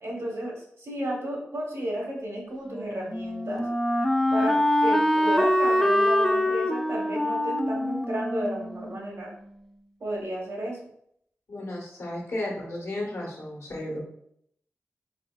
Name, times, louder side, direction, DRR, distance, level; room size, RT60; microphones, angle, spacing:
voice 1, 0.0-3.7 4.3-9.3 10.0-10.8, right 1 dB, 75° right, -1 dB, 1.1 m, -32 dB
Wind instrument woodwind instrument, 2.7-9.5, left 1 dB, 5° left, 0.4 m, -25 dB
voice 2, 11.5-14.0, left 1 dB, 75° left, -2 dB, 1.0 m, -33 dB
4.0 x 2.9 x 2.3 m, 0.71 s
wide cardioid pair, 60°, 5 cm